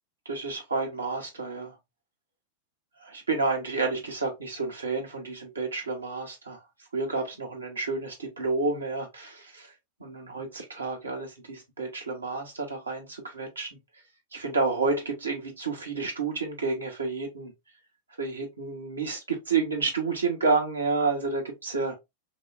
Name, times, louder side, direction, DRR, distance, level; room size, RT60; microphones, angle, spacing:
voice 1, 0.2-1.8 3.0-6.6 6.9-9.7 10.0-13.7 14.3-17.5 18.2-22.0, right 4 dB, 75° right, 1.3 m, -30 dB
5.7 x 2.3 x 2.5 m
figure-of-eight pair, 90°, 0 cm